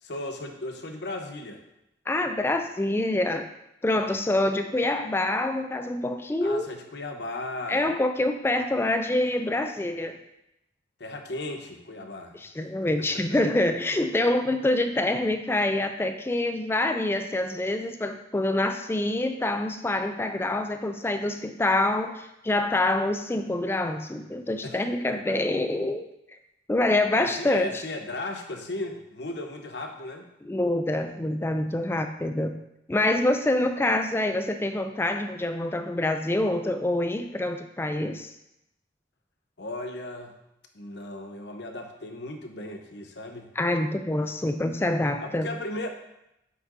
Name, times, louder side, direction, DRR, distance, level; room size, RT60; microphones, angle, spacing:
voice 1, 0.0-1.6 4.0-4.2 6.4-7.9 11.0-12.4 13.0-13.2 24.6-24.8 25.0-25.4 27.1-30.3 39.6-40.3 40.7-43.5 45.2-45.9, left 2 dB, 65° left, 4 dB, 0.9 m, -36 dB
voice 2, 2.1-3.5 3.8-6.7 7.7-10.2 12.3-26.1 26.7-27.7 30.4-32.6 32.9-38.3 43.6-45.5, left 1 dB, 15° left, 7 dB, 0.3 m, -26 dB
7.8 x 6.3 x 2.7 m, 0.85 s
head